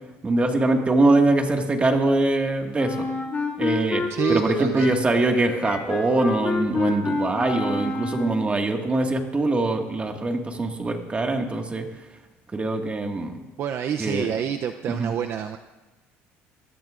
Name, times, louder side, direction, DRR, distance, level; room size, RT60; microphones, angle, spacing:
voice 1, 0.2-3.1 3.6-4.0 4.3-11.8 12.5-13.3 14.0-14.3 14.9-15.1, right 2 dB, 20° right, 3 dB, 1.8 m, -23 dB
Wind instrument woodwind instrument, 2.7-8.5, left 3 dB, 35° left, 2.6 m, -28 dB
voice 2, 4.1-4.9 13.6-15.6, right 8 dB, 50° right, 7 dB, 0.6 m, -27 dB
22.0 x 14.0 x 2.5 m, 1.2 s
cardioid pair, 105°, 5 cm